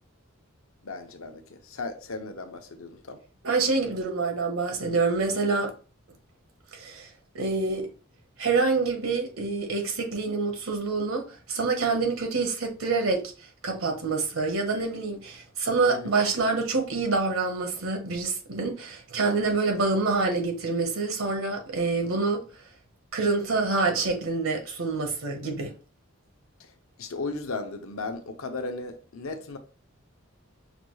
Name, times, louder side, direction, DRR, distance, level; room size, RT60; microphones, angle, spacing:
voice 1, 0.8-3.2 15.9-16.2 26.6-26.7 27.0-29.6, left 3 dB, 75° left, 0.7 m, -36 dB
voice 2, 3.4-5.7 6.7-7.1 7.3-7.9 8.4-13.3 13.6-22.4 23.1-25.7, right 3 dB, 80° right, 1.0 m, -26 dB
5.8 x 2.3 x 3.1 m
head